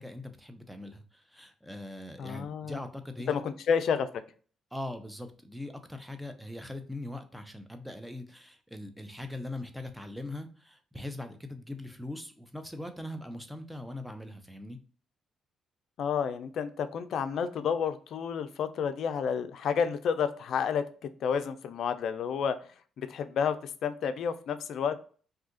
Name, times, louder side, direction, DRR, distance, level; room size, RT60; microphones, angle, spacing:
voice 1, 0.0-3.4 4.7-14.8, left 1 dB, 5° right, 7 dB, 0.6 m, -41 dB
voice 2, 2.2-2.8 3.3-4.1 16.0-20.8 21.2-22.6 23.0-25.0, left 7 dB, 70° left, 10 dB, 0.4 m, -30 dB
2.7 x 2.4 x 3.6 m, 0.42 s
cardioid pair, 90°, 0 cm